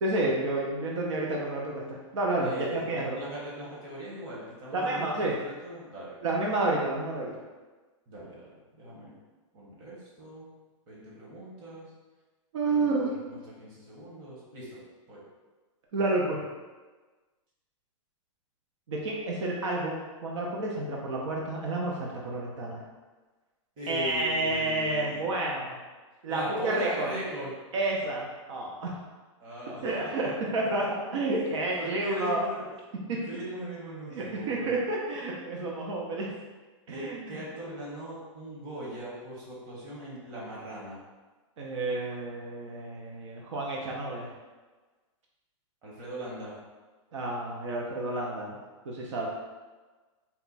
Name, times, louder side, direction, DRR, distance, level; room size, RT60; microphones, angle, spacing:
voice 1, 0.0-3.2 4.7-5.3 6.2-7.3 12.5-13.1 15.9-16.4 18.9-22.8 23.9-25.8 26.2-27.1 27.7-28.9 29.8-30.8 31.1-32.4 33.1-33.2 34.1-36.3 36.9-37.4 41.6-44.3 47.1-48.6 48.9-49.3, right 2 dB, 70° right, -2 dB, 0.7 m, -30 dB
voice 2, 2.4-6.2 8.1-9.1 9.5-10.5 10.9-11.9 12.7-14.8 15.1-15.2 23.8-25.2 26.3-27.5 29.4-30.3 30.8-30.9 31.3-31.4 31.7-32.7 33.1-34.7 36.9-41.0 45.8-46.6, right 1 dB, 25° right, -6 dB, 1.2 m, -39 dB
4.1 x 2.3 x 4.0 m, 1.3 s
hypercardioid pair, 155°, 16 cm